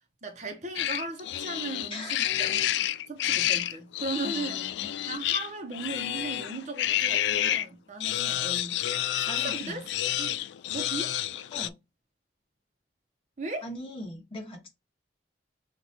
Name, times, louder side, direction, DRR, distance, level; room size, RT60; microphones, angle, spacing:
voice 1, 0.2-4.6 5.1-8.8 9.2-9.9 10.1-10.4 10.7-11.2 13.4-13.7, right 3 dB, 40° right, 0.9 m, -37 dB
sound 1, 0.8-7.7 8.0-11.7, left 12 dB, 80° left, 0.3 m, -29 dB
voice 2, 1.9-2.3 4.2-4.9 9.2-9.8 11.5-11.7 13.6-14.7, left 2 dB, 30° left, 1.5 m, -40 dB
5.9 x 2.5 x 2.8 m
head